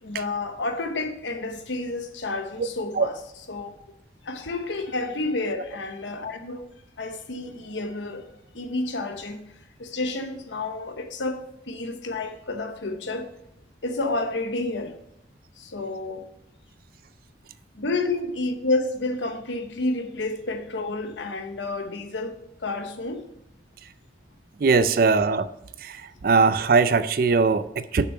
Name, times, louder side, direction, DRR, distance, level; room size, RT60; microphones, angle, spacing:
voice 1, 0.0-3.2 3.5-3.7 4.2-6.7 7.0-9.4 9.8-13.3 13.8-15.0 15.6-16.3 17.7-23.2, left 2 dB, 80° left, 1.0 m, -30 dB
voice 2, 24.6-25.5 25.8-26.0 26.2-28.1, right 4 dB, 50° right, 0.4 m, -20 dB
6.8 x 6.0 x 5.5 m
head